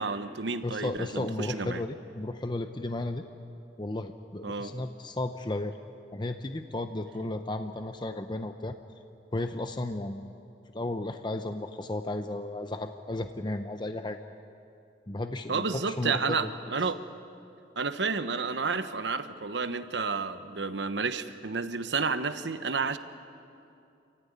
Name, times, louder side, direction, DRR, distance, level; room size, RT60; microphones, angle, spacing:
voice 1, 0.0-1.8 4.4-4.7 15.5-17.0 17.8-23.0, right 4 dB, 80° right, 10 dB, 1.1 m, -31 dB
voice 2, 0.6-3.2 3.8-5.8 6.1-8.8 9.3-10.3 10.7-14.2 15.1-16.5, left 2 dB, 25° left, 7 dB, 0.7 m, -34 dB
28.5 x 15.0 x 9.6 m, 2.6 s
head